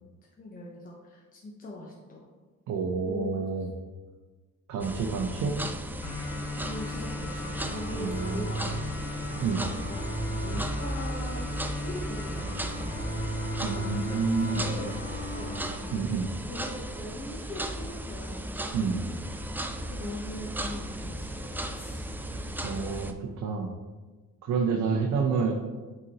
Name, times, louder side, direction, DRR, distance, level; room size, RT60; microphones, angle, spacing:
voice 1, 0.2-2.2 3.0-3.4 5.4-5.7 6.6-8.8 9.3-18.6 19.9-22.1, left 1 dB, 25° left, -2 dB, 0.9 m, -42 dB
voice 2, 2.7-3.7 4.7-5.6 7.9-8.5 9.4-9.7 13.6-14.6 15.9-16.3 18.7-19.1 22.3-23.7 24.4-25.5, right 5 dB, 65° right, 1 dB, 0.8 m, -29 dB
sound 1, 4.8-23.1, right 1 dB, 5° right, 0.3 m, -36 dB
sound 2, 6.0-17.0, equal, 70° left, 1.5 m, -36 dB
8.1 x 4.0 x 2.9 m, 1.3 s
cardioid pair, 105°, 32 cm